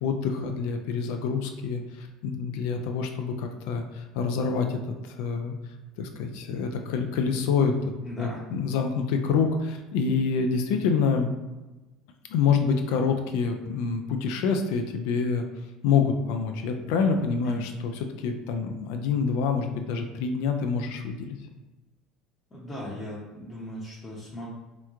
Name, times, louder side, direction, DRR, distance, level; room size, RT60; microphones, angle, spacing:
voice 1, 0.0-4.8 5.1-5.5 6.0-7.7 8.2-11.3 12.3-15.4 15.8-17.9 18.2-21.4, left 5 dB, 80° left, 5 dB, 0.4 m, -26 dB
voice 2, 8.1-8.5 17.4-17.6 22.5-24.5, equal, 25° left, -7 dB, 0.8 m, -38 dB
3.0 x 2.2 x 3.5 m, 1.1 s
supercardioid pair, 105°, 0 cm